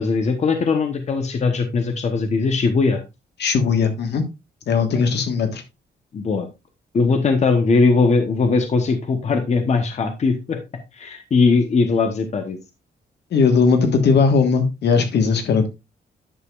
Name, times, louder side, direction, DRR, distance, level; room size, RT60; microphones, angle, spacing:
voice 1, 0.0-3.0 4.9-5.0 6.1-6.5 6.9-10.6 10.9-12.6, left 4 dB, 40° left, 6 dB, 1.0 m, -19 dB
voice 2, 3.4-4.2 4.7-5.6 13.3-15.7, left 5 dB, 70° left, 7 dB, 1.5 m, -18 dB
10.0 x 6.6 x 2.4 m, 0.24 s
wide cardioid pair, 170°, 18 cm